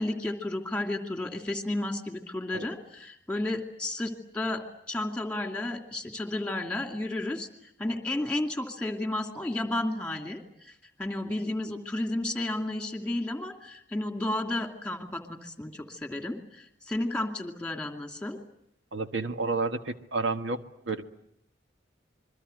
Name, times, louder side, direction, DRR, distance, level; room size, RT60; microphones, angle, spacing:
voice 1, 0.0-7.5 7.8-10.7 11.0-18.4, left 1 dB, 5° left, 4 dB, 2.5 m, -32 dB
voice 2, 18.9-20.6 20.8-21.0, right 3 dB, 85° right, 7 dB, 1.6 m, -30 dB
27.0 x 23.0 x 7.9 m, 0.73 s
head